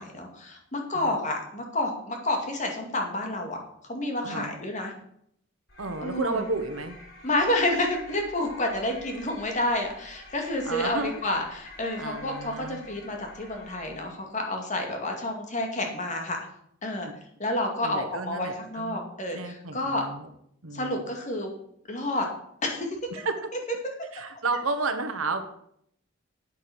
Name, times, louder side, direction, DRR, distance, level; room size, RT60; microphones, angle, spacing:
voice 1, 0.0-3.6 3.8-4.9 6.0-6.4 7.2-16.4 16.8-17.1 17.4-20.0 20.7-21.5 21.9-22.3 22.6-22.9, left 1 dB, 35° left, 2 dB, 2.3 m, -29 dB
voice 2, 4.2-4.5 5.8-7.0 10.7-11.2 12.0-12.8 17.0-17.1 17.8-19.0 19.3-20.3 20.6-21.0 23.1-23.3 24.1-25.5, right 3 dB, 90° right, 8 dB, 1.4 m, -32 dB
sound 1, 5.7-14.3, left 2 dB, 65° left, 5.0 m, -48 dB
9.1 x 8.0 x 6.2 m, 0.70 s
head